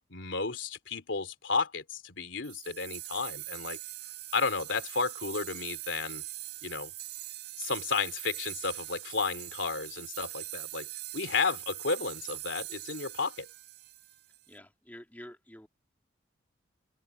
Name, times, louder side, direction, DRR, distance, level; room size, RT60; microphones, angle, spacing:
voice 1, 0.1-3.8 4.3-6.2 6.6-6.9 7.6-10.9 11.1-13.5, left 4 dB, 85° left, 3.1 m, -32 dB
sound 1, 2.4-14.5, right 16 dB, 60° right, 4.4 m, -42 dB
voice 2, 14.5-15.7, equal, 10° left, 2.4 m, -49 dB
open air
head